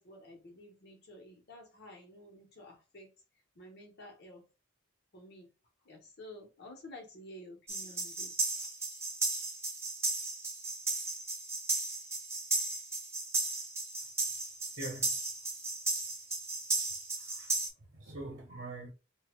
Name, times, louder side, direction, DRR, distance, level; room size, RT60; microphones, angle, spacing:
voice 1, 0.0-3.1 3.5-4.5 5.1-5.5 5.8-8.3, left 1 dB, 55° left, 1.0 m, -51 dB
sound 1, 7.7-17.7, right 3 dB, 15° right, 0.6 m, -35 dB
voice 2, 14.8-15.1 17.2-17.5 17.8-18.9, right 2 dB, 50° right, 0.9 m, -43 dB
2.8 x 2.4 x 3.6 m
head